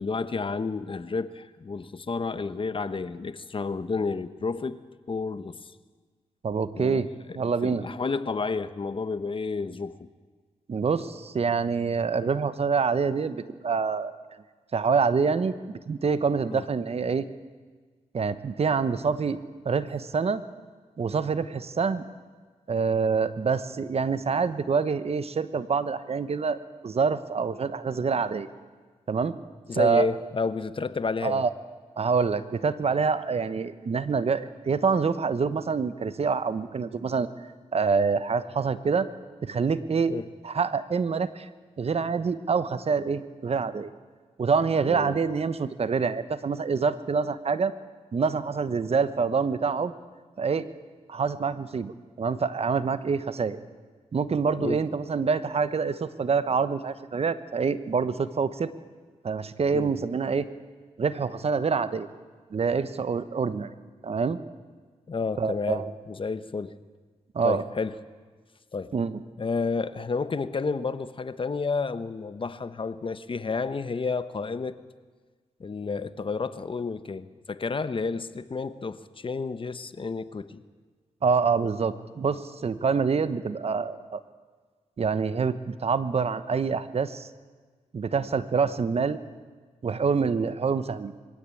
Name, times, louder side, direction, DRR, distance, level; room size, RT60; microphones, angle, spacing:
voice 1, 0.0-4.8 5.1-5.7 6.7-7.2 7.6-10.1 16.5-16.6 21.0-21.2 29.7-31.4 40.1-40.3 44.8-45.2 54.6-54.8 59.7-59.9 65.1-66.7 67.4-68.0 68.7-68.9 69.4-74.8 75.6-80.6, left 4 dB, 45° left, 13 dB, 1.0 m, -31 dB
voice 2, 6.4-7.1 7.3-7.8 10.7-14.1 14.7-15.5 15.9-17.2 18.1-19.4 19.6-20.4 21.0-22.0 22.7-26.6 26.8-28.5 29.1-29.4 29.7-30.1 31.2-31.5 32.0-37.3 37.7-39.1 39.4-40.1 40.4-41.5 41.8-43.9 44.4-47.7 48.1-49.9 50.4-50.7 51.1-53.6 54.1-58.7 59.2-60.5 61.0-62.1 62.5-63.7 64.0-64.4 65.4-65.9 67.3-67.6 68.9-69.2 81.2-84.2 85.0-87.3 87.9-89.2 89.8-91.1, right 5 dB, 55° right, 13 dB, 1.1 m, -26 dB
22.5 x 16.5 x 8.5 m, 1.4 s
cardioid pair, 65°, 12 cm